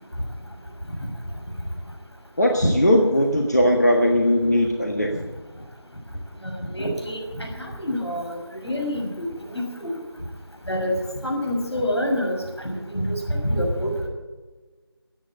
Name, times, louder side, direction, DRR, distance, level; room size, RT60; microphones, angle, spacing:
voice 1, 2.4-5.1, equal, 40° left, 1 dB, 1.5 m, -19 dB
voice 2, 6.7-9.3 9.5-10.0 10.7-10.9 11.2-12.4 12.6-14.1, equal, 85° left, 1 dB, 6.5 m, -26 dB
14.0 x 9.5 x 8.7 m, 1.3 s
figure-of-eight pair, 175°, 14 cm